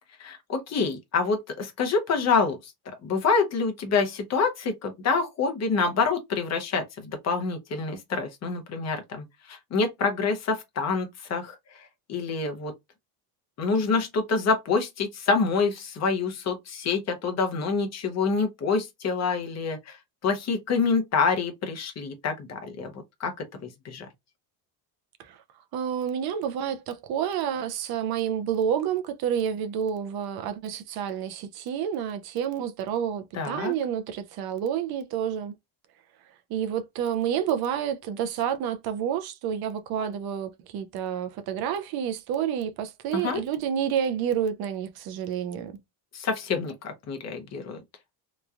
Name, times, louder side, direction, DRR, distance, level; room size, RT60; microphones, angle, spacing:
voice 1, 0.2-12.7 13.6-20.0 20.2-24.1 33.3-33.7 43.1-43.4 46.1-47.8, left 4 dB, 35° left, 0.7 m, -27 dB
voice 2, 25.7-35.6 36.5-45.8, right 8 dB, 55° right, 0.5 m, -29 dB
3.0 x 2.2 x 2.4 m
cardioid pair, 135°, 46 cm